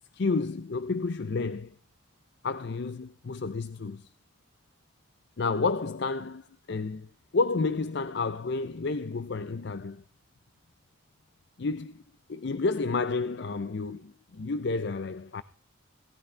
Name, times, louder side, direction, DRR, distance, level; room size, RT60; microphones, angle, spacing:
voice 1, 0.1-1.7 2.4-4.1 5.4-7.1 7.3-10.0 11.6-12.0 12.3-15.4, left 4 dB, 55° left, 0.5 m, -30 dB
18.0 x 13.5 x 3.3 m
head